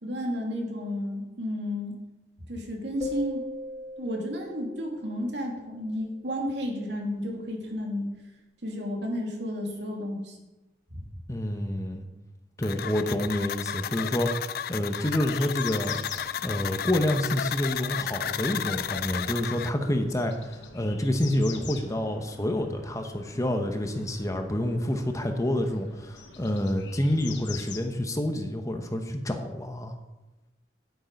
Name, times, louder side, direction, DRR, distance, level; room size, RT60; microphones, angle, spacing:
voice 1, 0.0-2.0 2.5-3.5 4.0-8.1 8.6-10.4 10.9-11.0 17.8-17.9, left 1 dB, 70° right, 1 dB, 2.5 m, -32 dB
sound 1, 3.0-5.6, equal, 35° left, 1.8 m, -39 dB
voice 2, 11.3-12.1 12.6-16.0 16.4-30.0, left 1 dB, 20° left, 5 dB, 0.9 m, -28 dB
sound 2, 12.6-19.7, left 9 dB, 55° left, 0.4 m, -33 dB
sound 3, 14.9-27.8, left 5 dB, 75° left, 1.2 m, -46 dB
10.5 x 8.6 x 5.3 m, 1.0 s
head